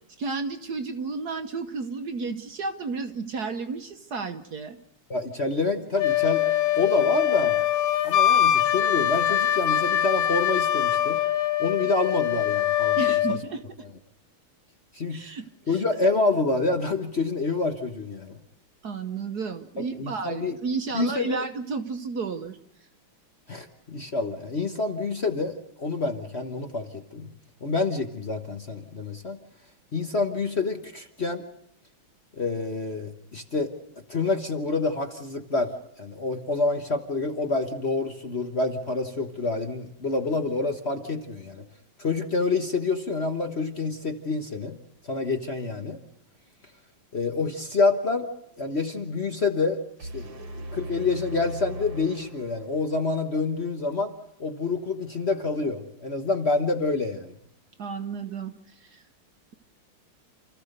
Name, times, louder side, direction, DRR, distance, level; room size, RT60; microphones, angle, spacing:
voice 1, 0.2-4.8 13.0-13.6 15.1-15.8 18.8-22.6 57.8-59.0, right 4 dB, 55° right, 8 dB, 1.4 m, -32 dB
voice 2, 5.1-6.5 6.7-7.6 8.0-11.2 11.6-13.0 13.3-13.4 14.9-15.2 15.7-18.4 19.8-20.5 20.9-21.4 23.5-27.3 27.6-29.4 29.9-31.4 32.4-33.7 34.1-35.7 36.0-41.6 42.0-44.8 45.1-46.0 47.1-48.3 48.6-54.1 54.4-57.3, left 3 dB, 35° left, 5 dB, 1.2 m, -27 dB
Wind instrument woodwind instrument, 6.0-13.4, left 11 dB, 65° left, 1.9 m, -23 dB
sound 1, 50.0-53.0, right 1 dB, 90° right, 2.8 m, -38 dB
28.5 x 14.5 x 6.7 m, 0.78 s
omnidirectional pair, 2.3 m